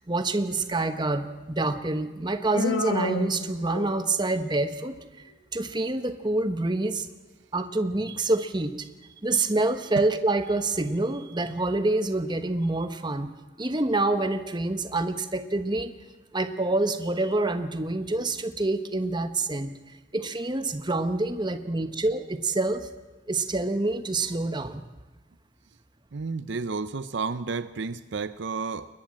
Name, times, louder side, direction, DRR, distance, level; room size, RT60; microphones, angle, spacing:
voice 1, 0.1-4.9 5.5-7.1 7.5-8.8 9.2-13.3 13.6-15.9 16.3-19.7 20.1-22.9 23.3-24.8, right 2 dB, 20° right, 9 dB, 1.1 m, -27 dB
Human voice, 2.5-4.2, left 3 dB, 75° left, 1.9 m, -30 dB
voice 2, 26.1-28.9, right 4 dB, 60° right, 13 dB, 0.6 m, -31 dB
21.5 x 20.5 x 7.5 m, 1.2 s
head